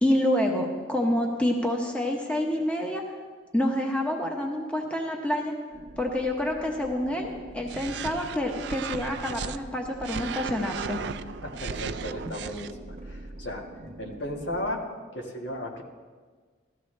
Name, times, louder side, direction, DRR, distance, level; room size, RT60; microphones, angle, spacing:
voice 1, 0.0-3.0 3.5-5.5 6.0-7.3 7.5-11.0, left 1 dB, 5° left, 1 dB, 0.9 m, -27 dB
sound 1, 5.7-14.8, right 2 dB, 35° right, 1.0 m, -44 dB
sound 2, 7.6-9.6 10.0-12.7, right 6 dB, 60° right, 0.4 m, -36 dB
voice 2, 11.4-13.6 14.0-14.8 15.1-15.8, left 1 dB, 65° left, 1 dB, 1.6 m, -35 dB
15.0 x 13.0 x 3.3 m, 1.5 s
head